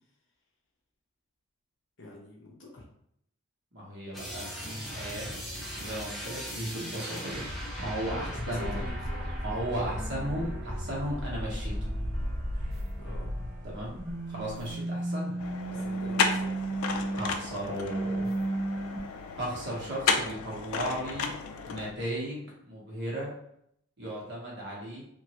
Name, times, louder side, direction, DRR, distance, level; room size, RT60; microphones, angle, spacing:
voice 1, 2.0-2.8 8.0-10.0 12.9-13.3 15.7-16.6, left 3 dB, 60° left, -2 dB, 0.8 m, -45 dB
voice 2, 3.7-5.4 5.7-8.8 9.4-11.8 13.6-14.0 14.3-15.3 15.7-15.8 17.1-18.3 19.3-21.3 21.6-23.3 24.0-25.0, right 1 dB, 55° right, -4 dB, 1.0 m, -36 dB
sound 1, 4.1-13.7 13.9-19.0, right 1 dB, ahead, 0.6 m, -35 dB
sound 2, 8.6-14.7, equal, 85° right, 0.5 m, -39 dB
sound 3, 15.4-21.9, left 5 dB, 80° left, 0.4 m, -33 dB
3.0 x 2.5 x 2.9 m, 0.72 s
head